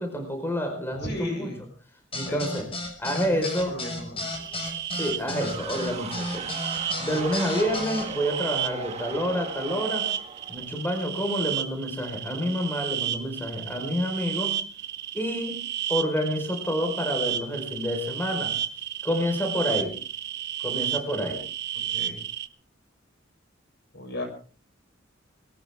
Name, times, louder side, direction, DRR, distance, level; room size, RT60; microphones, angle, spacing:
voice 1, 0.0-1.5 2.1-2.7 3.0-3.8 4.9-6.5 7.0-10.1 10.5-14.5 15.1-15.6 15.9-18.5 19.0-20.0 20.6-21.4, equal, 10° left, 3 dB, 4.7 m, -28 dB
voice 2, 1.0-1.7 2.3-2.5 3.1-3.4 3.6-4.2 21.9-22.2 23.9-24.2, left 1 dB, 60° left, 4 dB, 7.2 m, -35 dB
sound 1, 2.1-8.0, left 2 dB, 30° left, 5.8 m, -33 dB
sound 2, 4.2-22.5, right 11 dB, 60° right, 1.1 m, -33 dB
sound 3, 5.3-11.1, right 4 dB, 35° right, 1.6 m, -38 dB
21.5 x 18.5 x 3.7 m, 0.40 s
head